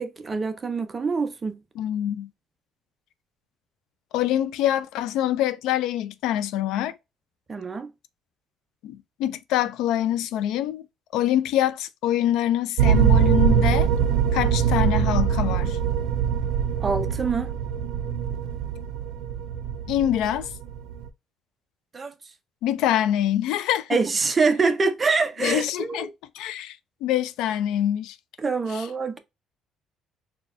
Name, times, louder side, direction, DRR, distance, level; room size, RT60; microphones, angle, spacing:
voice 1, 0.0-1.6 7.5-7.9 16.8-17.5 21.9-22.1 23.9-26.1 28.4-29.2, right 4 dB, 20° right, 0.5 m, -25 dB
voice 2, 1.8-2.3 4.1-6.9 8.8-10.9 11.1-13.9 14.3-15.8 19.9-20.5 22.6-24.0 25.4-26.1 26.3-28.2 28.7-28.9, left 11 dB, 75° left, 0.3 m, -25 dB
sound 1, 12.8-21.1, right 8 dB, 85° right, 0.5 m, -23 dB
4.2 x 2.2 x 3.4 m
cardioid pair, 170°, 0 cm